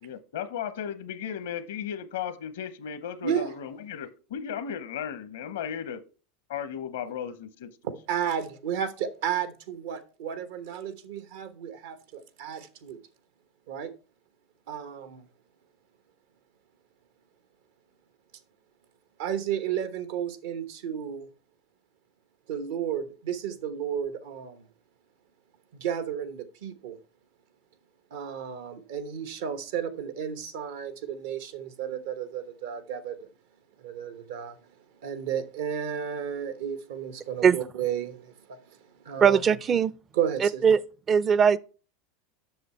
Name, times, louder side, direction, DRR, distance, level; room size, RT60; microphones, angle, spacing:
voice 1, 0.0-6.0 6.5-7.7, left 8 dB, 85° left, 0.9 m, -35 dB
voice 2, 3.2-3.5 7.8-13.0 13.7-13.9 14.7-15.2 19.2-21.3 22.5-24.6 25.8-27.0 28.1-33.2 33.8-34.6 35.0-38.3 39.0-39.4 40.1-40.6, right 8 dB, 75° right, 1.0 m, -32 dB
voice 3, 39.2-39.9 40.4-40.8 41.1-41.6, right 7 dB, 35° right, 0.4 m, -20 dB
7.8 x 6.3 x 4.3 m
hypercardioid pair, 100°, 0 cm